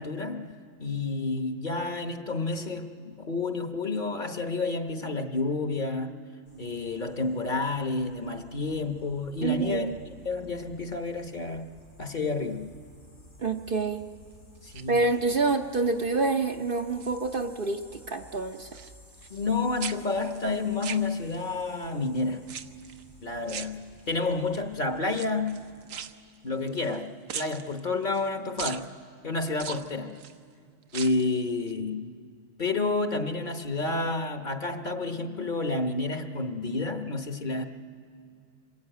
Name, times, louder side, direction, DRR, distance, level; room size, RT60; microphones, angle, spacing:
voice 1, 0.0-6.2 6.6-9.9 10.2-11.7 12.0-12.7 14.6-15.0 19.3-22.5 23.2-25.7 26.4-28.9 29.2-30.2 30.9-32.2 32.6-37.6, left 3 dB, 40° left, 6 dB, 1.1 m, -30 dB
sound 1, 6.4-26.1, left 1 dB, 80° left, 3.8 m, -54 dB
voice 2, 9.4-10.0 13.4-14.1 14.9-18.7, right 3 dB, 50° right, 4 dB, 0.9 m, -27 dB
sound 2, 14.6-15.5 16.0-16.4 16.7-17.7 18.0-19.5 19.8-21.6 22.4-23.0 23.5-24.3 25.1-27.0 27.3-28.3 28.6-28.9 29.5-30.4 30.8-31.3 31.7-31.8, right 8 dB, 80° right, 1.2 m, -41 dB
26.5 x 22.0 x 9.0 m, 2.2 s
omnidirectional pair, 1.3 m